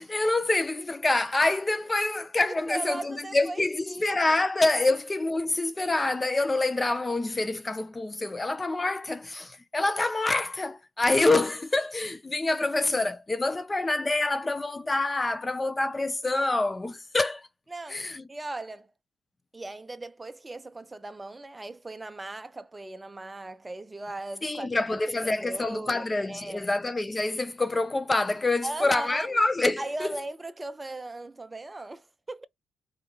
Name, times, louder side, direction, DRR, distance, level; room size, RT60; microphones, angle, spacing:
voice 1, 0.0-17.4 17.9-18.2 24.4-29.8, left 2 dB, 20° left, 0.4 m, -26 dB
voice 2, 2.5-4.3 17.7-18.9 19.5-24.7 25.2-26.7 28.6-29.3 29.8-32.4, right 2 dB, 20° right, 0.7 m, -38 dB
4.6 x 3.3 x 2.7 m
cardioid pair, 90°, 0 cm